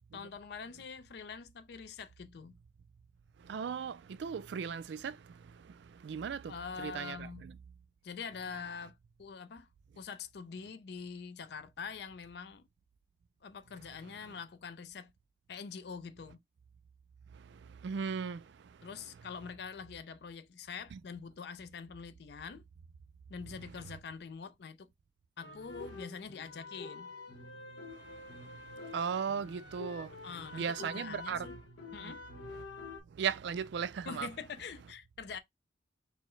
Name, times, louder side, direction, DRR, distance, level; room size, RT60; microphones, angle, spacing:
voice 1, 0.1-2.6 6.5-7.5 8.0-9.7 10.0-12.6 13.4-15.1 15.5-16.4 18.8-22.6 23.3-24.9 25.4-27.1 30.2-31.6 31.9-32.2 34.1-35.4, left 6 dB, 55° left, 0.4 m, -45 dB
voice 2, 3.4-7.5 14.3-14.4 17.3-18.4 20.9-21.0 28.3-28.5 28.9-30.3 30.5-31.5 32.0-32.2 32.5-32.6 33.1-34.3, right 6 dB, 65° right, 0.3 m, -37 dB
sound 1, 25.4-33.0, left 3 dB, 75° left, 1.0 m, -47 dB
4.5 x 2.1 x 3.0 m
head